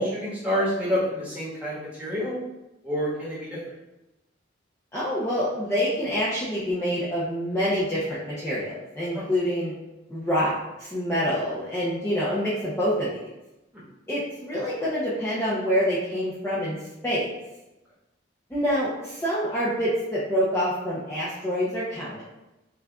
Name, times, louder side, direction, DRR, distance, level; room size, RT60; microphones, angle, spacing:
voice 1, 0.0-2.4 2.8-3.6 9.1-9.2, equal, 5° right, -9 dB, 1.3 m, -28 dB
voice 2, 4.9-9.7 10.1-13.1 14.1-16.8 17.0-17.3 18.5-22.2, equal, 15° left, -10 dB, 0.6 m, -26 dB
5.7 x 2.5 x 2.3 m, 0.99 s
head